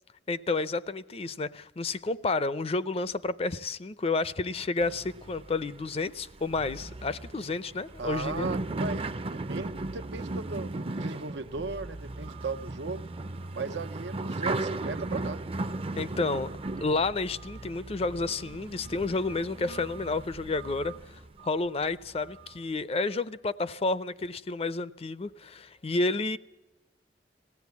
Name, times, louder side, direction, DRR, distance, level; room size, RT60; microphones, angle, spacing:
voice 1, 0.3-8.5 16.0-16.5 16.8-20.9 21.4-26.4, left 3 dB, 35° left, 0.6 m, -30 dB
sound 1, 4.8-21.5 22.0-22.6, right 2 dB, 35° right, 0.6 m, -37 dB
voice 2, 8.0-13.1 13.5-15.4, right 4 dB, 90° right, 0.8 m, -37 dB
20.0 x 16.0 x 8.3 m
head